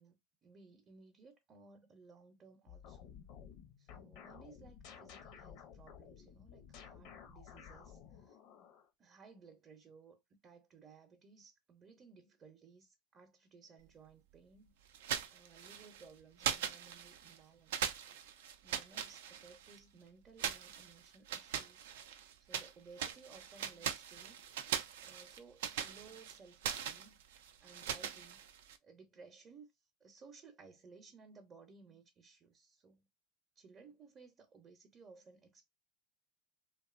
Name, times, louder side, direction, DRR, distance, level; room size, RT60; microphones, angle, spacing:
voice 1, 0.0-3.1 3.8-8.4 9.0-14.7 15.3-18.0 18.6-21.9 22.4-24.4 25.0-27.2 27.6-28.4 28.8-29.7 30.0-33.1 33.6-35.7, right 4 dB, 35° right, 0.6 m, -59 dB
sound 1, 2.7-8.9, left 8 dB, 60° left, 0.7 m, -54 dB
sound 2, 14.9-16.1 16.4-17.4 17.7-19.8 20.4-22.7 23.0-28.8, right 9 dB, 75° right, 0.4 m, -41 dB
2.6 x 2.3 x 2.4 m
hypercardioid pair, 95°, 0 cm